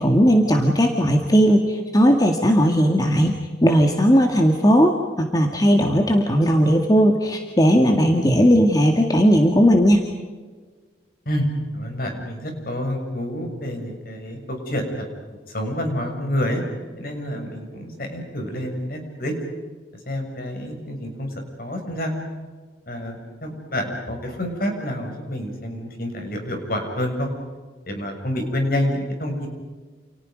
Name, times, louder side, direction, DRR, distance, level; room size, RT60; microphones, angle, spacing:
voice 1, 0.0-3.3 3.6-10.1, equal, 20° left, 2 dB, 2.1 m, -17 dB
voice 2, 11.7-15.0 15.5-16.6 17.0-19.3 20.1-21.3 21.6-22.1 22.9-27.3 27.9-29.5, left 1 dB, 55° left, 3 dB, 6.9 m, -28 dB
30.0 x 29.0 x 5.3 m, 1.4 s
head